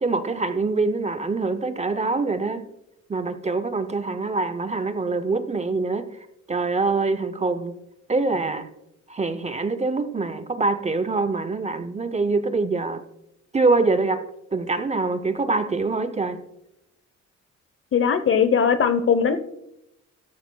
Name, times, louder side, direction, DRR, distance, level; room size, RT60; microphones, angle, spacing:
voice 1, 0.0-2.6 3.1-6.1 6.5-7.7 8.1-8.7 9.1-13.0 13.5-14.2 14.5-16.4, right 3 dB, 25° right, 0.6 m, -24 dB
voice 2, 17.9-19.4, left 6 dB, 45° left, 0.8 m, -19 dB
13.5 x 12.0 x 2.3 m
cardioid pair, 90°, 30 cm